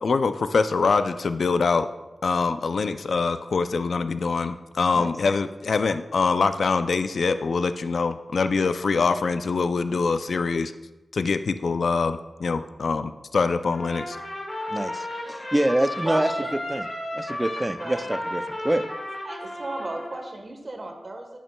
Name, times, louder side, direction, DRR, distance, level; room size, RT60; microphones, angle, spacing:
voice 1, 0.0-1.9 2.2-10.7 11.1-14.2, left 4 dB, 70° left, 11 dB, 0.3 m, -24 dB
Trumpet, 13.7-20.3, left 1 dB, 40° left, 1.7 m, -33 dB
voice 2, 14.7-16.3 16.7-16.9 17.1-18.8, right 1 dB, 15° right, 11 dB, 0.4 m, -26 dB
voice 3, 16.0-16.6 17.8-18.1 19.2-21.4, right 2 dB, 40° right, 3 dB, 1.2 m, -34 dB
10.5 x 9.1 x 2.2 m, 1.1 s
wide cardioid pair, 125°, 0 cm